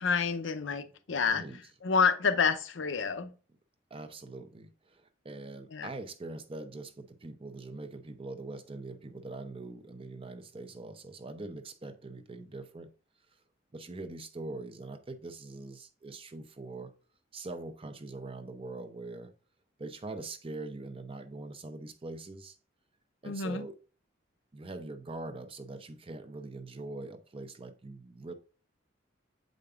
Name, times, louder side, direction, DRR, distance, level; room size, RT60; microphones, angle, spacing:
voice 1, 0.0-1.4 1.8-3.3 5.7-5.9 23.2-23.6, left 5 dB, 75° left, 0.6 m, -28 dB
voice 2, 1.1-1.6 3.9-12.9 13.7-16.9 17.3-19.3 19.8-22.6 23.2-23.8 24.5-28.3, right 2 dB, 30° right, 0.6 m, -43 dB
7.8 x 5.1 x 2.4 m
head